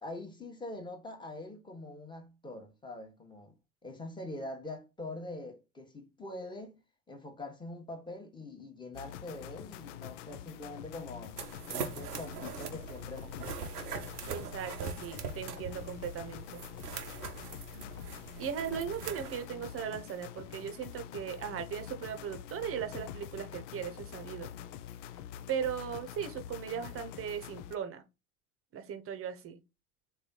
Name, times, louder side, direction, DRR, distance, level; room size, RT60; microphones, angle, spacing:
voice 1, 0.0-3.5 3.8-6.8 7.1-11.4 11.7-13.7, left 2 dB, 10° left, 1.1 m, -44 dB
sound 1, 8.9-27.7, left 10 dB, 55° left, 0.5 m, -46 dB
sound 2, 11.4-19.4, right 6 dB, 80° right, 0.8 m, -42 dB
voice 2, 14.3-16.6 17.7-17.9 18.4-24.5 25.5-28.0 28.7-29.6, right 8 dB, 30° right, 0.9 m, -38 dB
3.5 x 3.3 x 3.9 m
figure-of-eight pair, 75°, 46 cm